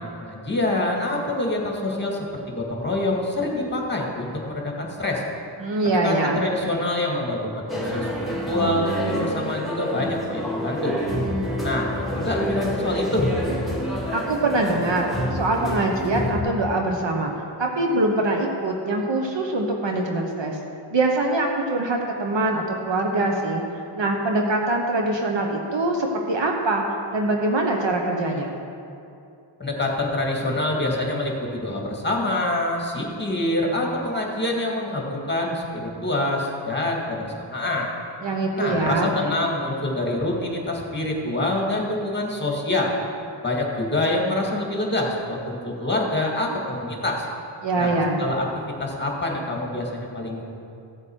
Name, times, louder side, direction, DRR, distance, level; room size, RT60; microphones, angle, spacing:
voice 1, 0.0-2.2 2.5-5.2 5.8-10.9 11.6-13.3 29.6-37.9 38.5-42.9 43.4-47.2 47.8-47.9 48.2-48.5 48.8-50.4, left 1 dB, 20° left, -1 dB, 2.1 m, -26 dB
voice 2, 5.6-6.5 14.1-17.3 17.6-20.6 20.9-23.6 23.9-26.8 27.1-28.5 38.2-39.1 47.6-48.2, right 2 dB, 60° right, 1 dB, 1.2 m, -23 dB
sound 1, 7.7-16.4, equal, ahead, 2.4 m, -28 dB
15.5 x 7.7 x 4.7 m, 2.6 s
wide cardioid pair, 105°, 50 cm